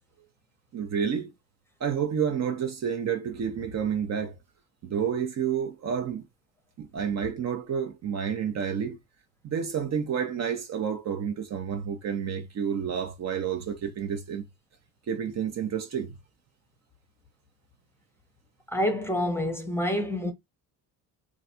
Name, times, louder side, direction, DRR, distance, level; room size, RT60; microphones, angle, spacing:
voice 1, 0.7-1.3 1.8-4.4 4.8-6.3 6.8-9.0 9.4-14.4 15.1-16.1, right 7 dB, 45° right, 0.7 m, -30 dB
voice 2, 18.7-20.3, left 1 dB, 5° left, 0.8 m, -27 dB
3.1 x 2.4 x 2.7 m
supercardioid pair, 85°, 38 cm